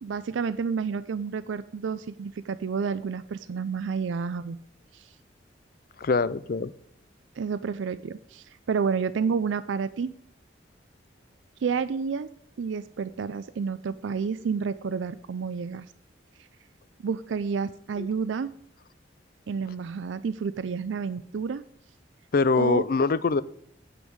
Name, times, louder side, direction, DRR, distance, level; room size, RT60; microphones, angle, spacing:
voice 1, 0.0-4.6 4.9-5.1 7.4-10.1 11.6-12.3 12.6-15.9 17.0-18.5 19.5-21.6 22.6-22.8, right 5 dB, 80° right, 15 dB, 0.4 m, -30 dB
voice 2, 6.0-6.7 18.0-18.1 22.3-23.4, left 4 dB, 50° left, 17 dB, 0.4 m, -23 dB
9.4 x 5.4 x 7.9 m, 0.64 s
head